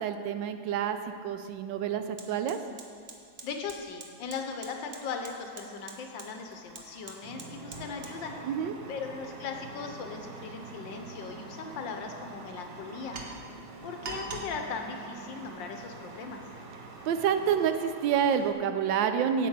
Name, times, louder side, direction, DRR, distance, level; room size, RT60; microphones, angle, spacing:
voice 1, 0.0-2.6 8.4-8.7 17.0-19.5, right 8 dB, 80° right, 8 dB, 1.3 m, -28 dB
Fire, 1.2-1.3 1.5-18.5, right 3 dB, 45° right, 0.9 m, -46 dB
voice 2, 3.4-8.3 8.9-13.2 13.8-16.4, left 5 dB, 80° left, 4 dB, 1.5 m, -38 dB
sound 1, 7.2-17.7, right 3 dB, 15° right, 0.6 m, -48 dB
8.4 x 5.9 x 7.9 m, 2.2 s
omnidirectional pair, 2.0 m